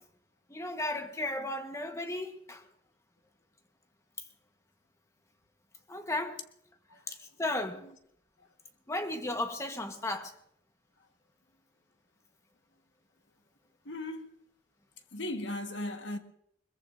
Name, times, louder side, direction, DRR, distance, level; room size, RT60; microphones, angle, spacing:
voice 1, 0.5-2.6 5.9-6.4 7.1-7.9 8.9-10.3, left 2 dB, 15° left, 1.2 m, -35 dB
voice 2, 7.6-7.9 8.4-8.5 13.8-14.4 15.1-16.2, left 1 dB, 85° left, 1.4 m, -38 dB
22.0 x 21.5 x 2.6 m
head